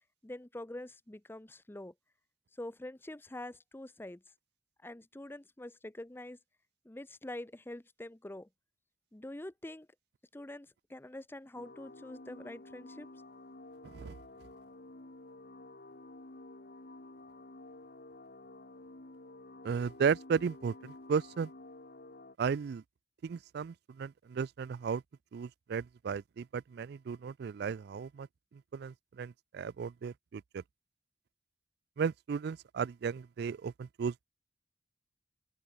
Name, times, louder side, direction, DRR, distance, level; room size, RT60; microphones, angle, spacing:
voice 1, 0.2-1.9 2.5-4.2 4.8-6.4 6.8-8.5 9.1-9.9 10.3-13.1, left 1 dB, 10° left, 0.6 m, -45 dB
sound 1, 11.5-22.4, left 2 dB, 55° left, 2.0 m, -51 dB
voice 2, 19.6-21.5 22.4-22.8 23.2-25.0 25.3-28.3 28.7-30.6 32.0-34.2, right 6 dB, 60° right, 0.3 m, -35 dB
open air
head